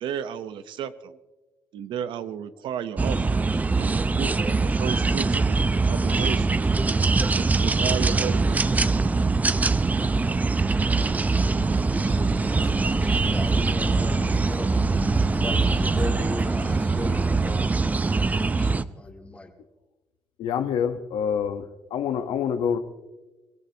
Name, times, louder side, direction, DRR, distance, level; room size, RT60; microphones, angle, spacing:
voice 1, 0.0-1.2 1.7-6.6 7.4-8.7, right 9 dB, 75° right, 0.9 m, -33 dB
sound 1, 3.0-18.8, right 3 dB, 20° right, 0.5 m, -23 dB
sound 2, 11.4-17.6, left 3 dB, 50° left, 3.0 m, -39 dB
voice 2, 11.5-12.6 12.9-14.9 15.3-17.9 18.4-19.5, left 2 dB, 15° left, 2.4 m, -38 dB
voice 3, 20.4-21.6 21.9-22.8, left 8 dB, 75° left, 1.1 m, -26 dB
25.0 x 16.5 x 2.9 m
cardioid pair, 115°, 8 cm